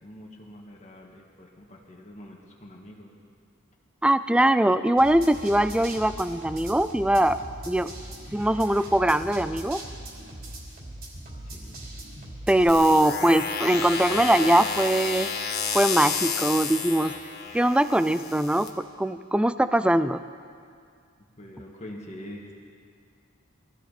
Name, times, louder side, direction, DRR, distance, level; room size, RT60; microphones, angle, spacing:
voice 1, 0.0-3.1 11.3-11.8 21.4-22.5, left 1 dB, 35° left, -2 dB, 1.8 m, -44 dB
voice 2, 4.0-7.4 7.7-7.9 8.3-9.8 12.5-15.3 15.7-17.1 17.5-18.7 19.0-20.2, right 1 dB, 5° right, 12 dB, 0.4 m, -22 dB
sound 1, 5.0-12.7, right 1 dB, 50° right, 3.2 m, -40 dB
sound 2, 12.7-18.7, left 6 dB, 55° left, 1.4 m, -31 dB
23.0 x 14.5 x 4.2 m, 2.2 s
head